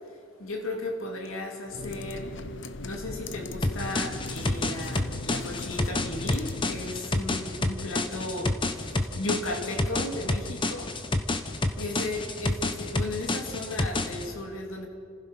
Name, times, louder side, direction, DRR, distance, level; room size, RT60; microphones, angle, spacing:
voice 1, 0.4-2.4 2.8-11.0 11.8-14.9, left 2 dB, 80° left, 2 dB, 2.8 m, -35 dB
sound 1, 1.7-7.0, left 2 dB, 60° left, 0.8 m, -38 dB
sound 2, 3.6-14.3, left 2 dB, 25° left, 1.1 m, -29 dB
29.5 x 15.5 x 6.1 m, 2.5 s
head